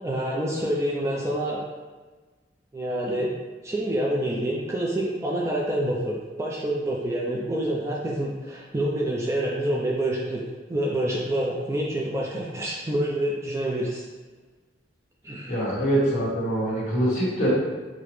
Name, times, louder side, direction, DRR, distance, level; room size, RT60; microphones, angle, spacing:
voice 1, 0.0-1.6 2.7-3.3 3.6-10.4 10.7-14.0 15.2-15.5, right 1 dB, 15° right, -4 dB, 0.4 m, -27 dB
voice 2, 15.5-17.5, right 1 dB, 45° left, -8 dB, 1.3 m, -24 dB
4.8 x 2.1 x 3.0 m, 1.3 s
head